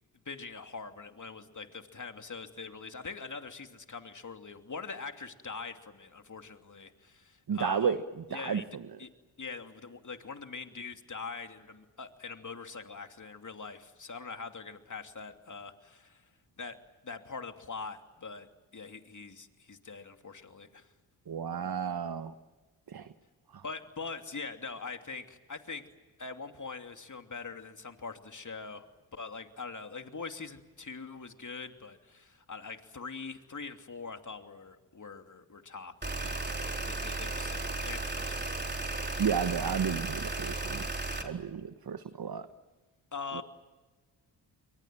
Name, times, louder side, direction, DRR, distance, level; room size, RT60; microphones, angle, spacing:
voice 1, 0.2-8.0 8.3-8.7 9.0-9.1 9.4-16.3 16.6-20.9 23.6-25.9 26.2-28.9 29.1-36.6 36.8-38.6 43.1-43.4, left 4 dB, 40° left, 6 dB, 2.9 m, -43 dB
voice 2, 7.5-8.0 8.3-8.6 21.3-22.3 22.9-23.1 23.5-23.6 39.2-40.8 41.2-42.5 43.3-43.4, right 7 dB, 50° right, 11 dB, 1.4 m, -32 dB
sound 1, 36.0-41.2, right 2 dB, 25° right, 4.2 m, -35 dB
30.0 x 23.5 x 7.7 m, 1.3 s
supercardioid pair, 45°, 45 cm